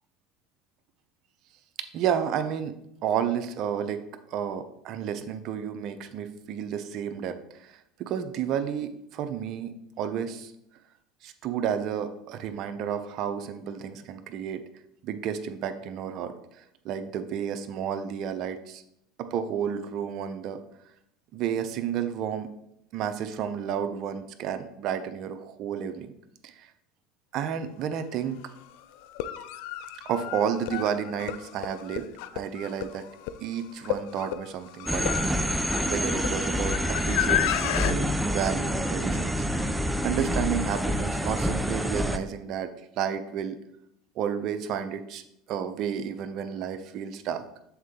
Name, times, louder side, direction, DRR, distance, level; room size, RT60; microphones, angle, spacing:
voice 1, 1.9-2.7 3.0-4.0 4.3-10.5 11.2-14.6 15.0-18.8 19.2-20.6 21.3-22.5 22.9-26.1 26.4-26.7 27.3-28.4 30.0-32.0 32.3-33.0 33.4-39.7 40.0-42.7 43.0-43.6 44.2-45.2 45.5-47.4, right 8 dB, 55° right, 9 dB, 0.6 m, -31 dB
sound 1, 27.9-28.0 29.0-37.9, left 12 dB, 70° left, 0.4 m, -32 dB
sound 2, 34.9-42.2, equal, 5° right, 0.4 m, -27 dB
7.1 x 3.8 x 3.6 m, 0.77 s
supercardioid pair, 95°, 0 cm